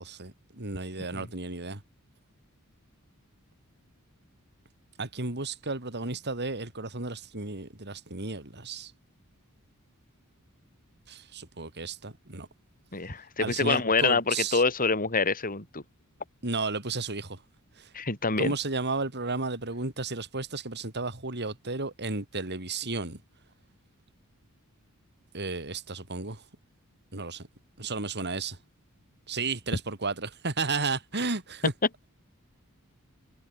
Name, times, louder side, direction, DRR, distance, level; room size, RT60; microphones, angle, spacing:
voice 1, 0.0-1.8 5.0-8.9 11.1-12.5 13.4-14.6 16.4-17.4 17.8-17.9 18.4-23.2 25.3-26.4 27.1-27.5 27.8-28.6 29.3-31.7, right 3 dB, 50° right, 4.1 m, -33 dB
voice 2, 12.9-15.8 17.9-18.5, left 4 dB, 40° left, 4.2 m, -26 dB
head